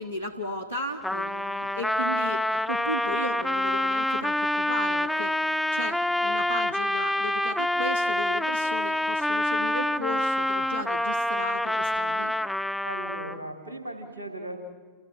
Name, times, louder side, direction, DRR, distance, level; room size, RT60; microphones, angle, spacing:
voice 1, 0.0-12.3, equal, 80° left, 6 dB, 1.1 m, -35 dB
Trumpet, 1.0-13.5, left 1 dB, 5° left, 0.5 m, -27 dB
voice 2, 12.8-14.6, right 1 dB, 80° right, 4 dB, 3.3 m, -37 dB
29.0 x 18.5 x 6.2 m, 1.5 s
figure-of-eight pair, 90°, 0 cm